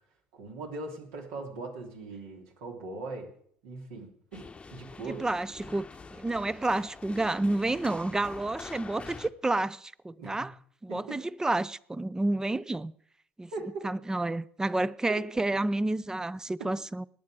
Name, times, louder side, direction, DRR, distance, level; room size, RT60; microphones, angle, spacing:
voice 1, 0.3-3.3 3.6-5.2 10.2-10.5 10.9-11.2 13.5-13.8 15.1-15.2 16.6-16.7, right 3 dB, 70° right, 3.0 m, -40 dB
sound 1, 4.3-9.3, left 4 dB, 20° left, 0.9 m, -46 dB
voice 2, 5.0-5.9 6.1-10.5 10.8-12.9 13.4-13.5 13.8-17.0, right 2 dB, 15° right, 0.5 m, -30 dB
19.5 x 8.4 x 4.9 m
hypercardioid pair, 65°, 5 cm